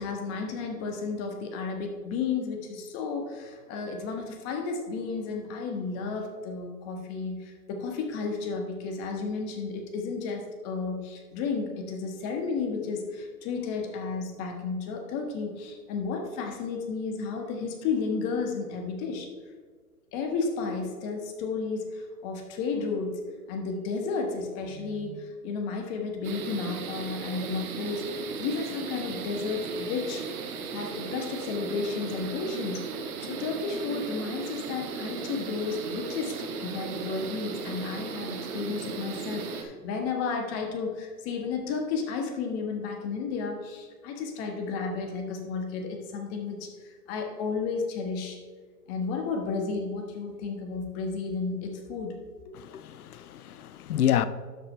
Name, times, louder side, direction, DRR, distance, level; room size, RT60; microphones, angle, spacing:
voice 1, 0.0-19.3 20.1-23.1 23.5-30.2 30.7-32.8 33.2-48.4 48.9-52.2 52.4-52.5, left 4 dB, 30° left, 1.4 m, -32 dB
sound 1, 26.2-39.6, right 5 dB, 65° right, 1.6 m, -36 dB
voice 2, 52.6-54.3, left 10 dB, 70° left, 0.7 m, -28 dB
12.0 x 5.2 x 4.4 m
hypercardioid pair, 125°, 47 cm